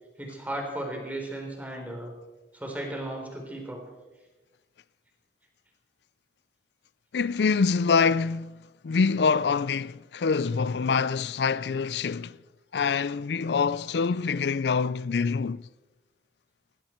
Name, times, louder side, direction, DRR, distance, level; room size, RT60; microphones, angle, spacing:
voice 1, 0.2-2.1 2.5-3.8, right 1 dB, 10° right, 3.7 m, -35 dB
voice 2, 7.1-12.4 12.7-15.6, left 5 dB, 70° left, 0.4 m, -25 dB
20.0 x 16.0 x 4.5 m
head